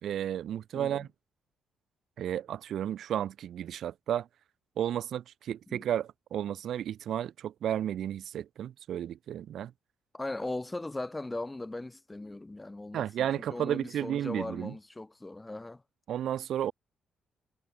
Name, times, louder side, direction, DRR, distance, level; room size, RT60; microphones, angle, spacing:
voice 1, 0.0-1.1 2.2-4.3 4.8-9.7 12.9-14.7 16.1-16.7, right 10 dB, 70° right, 1.4 m, -33 dB
voice 2, 10.1-15.8, left 2 dB, 15° left, 2.3 m, -39 dB
cardioid pair, 90°, 0 cm